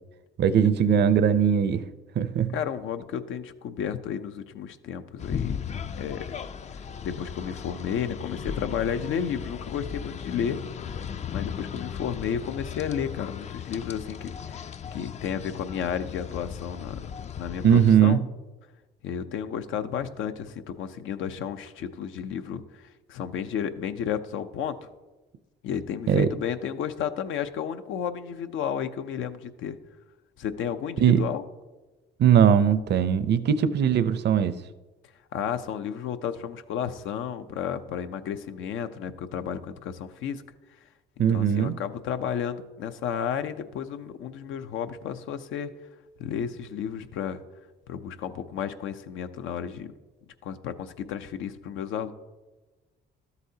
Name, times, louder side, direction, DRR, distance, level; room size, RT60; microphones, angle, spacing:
voice 1, 0.4-1.9 2.2-2.5 17.6-18.2 26.1-26.3 31.0-31.2 32.2-34.6 41.2-41.8, right 8 dB, 60° right, 14 dB, 0.6 m, -20 dB
voice 2, 2.5-5.6 6.0-6.2 7.0-10.6 11.3-14.7 14.9-17.0 17.4-18.2 19.0-24.8 25.6-29.8 30.4-31.4 35.3-40.4 41.3-45.7 46.2-47.4 47.9-49.9 50.4-52.1, left 8 dB, 80° left, 9 dB, 0.6 m, -32 dB
sound 1, 5.2-18.0, left 7 dB, 35° left, 0.4 m, -36 dB
12.5 x 8.1 x 2.8 m, 1.2 s
cardioid pair, 90°, 20 cm